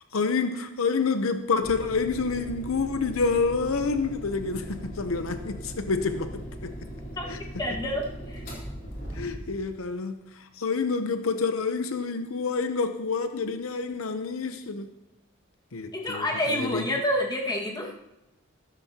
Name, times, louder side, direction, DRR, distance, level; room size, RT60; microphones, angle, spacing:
voice 1, 0.1-6.8 7.3-7.4 9.1-14.9 15.7-17.0, left 4 dB, 80° left, 0.8 m, -28 dB
sound 1, 1.6-9.7, equal, 45° left, 3.9 m, -39 dB
voice 2, 7.6-8.5 15.9-17.9, left 1 dB, 20° left, 1.7 m, -28 dB
14.0 x 13.0 x 2.9 m
head